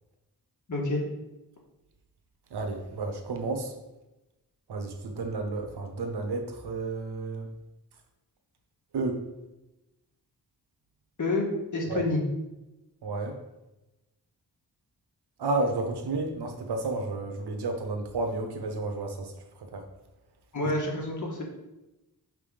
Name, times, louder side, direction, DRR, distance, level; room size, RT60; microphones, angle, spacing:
voice 1, 0.7-1.0 11.2-12.2 20.5-21.4, left 2 dB, 50° left, -2 dB, 1.8 m, -28 dB
voice 2, 2.5-3.7 4.7-7.5 8.9-9.2 11.9-12.0 13.0-13.4 15.4-19.3 19.7-19.8, right 3 dB, 85° right, 4 dB, 1.0 m, -31 dB
5.8 x 3.6 x 5.0 m, 0.99 s
cardioid pair, 55°, 38 cm